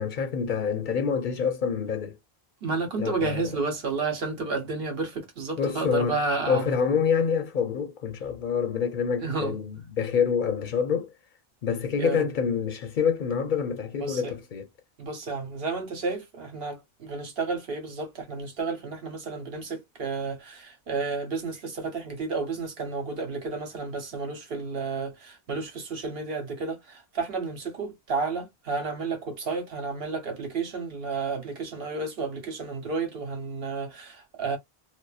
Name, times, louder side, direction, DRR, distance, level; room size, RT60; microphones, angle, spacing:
voice 1, 0.0-2.2 3.0-3.5 5.6-6.2 6.5-11.1 11.6-14.7, left 6 dB, 60° left, 0.6 m, -27 dB
voice 2, 2.6-6.6 9.2-9.6 11.9-12.2 14.0-14.3 15.0-34.6, right 4 dB, 75° right, 1.1 m, -31 dB
2.6 x 2.0 x 2.3 m
omnidirectional pair, 1.0 m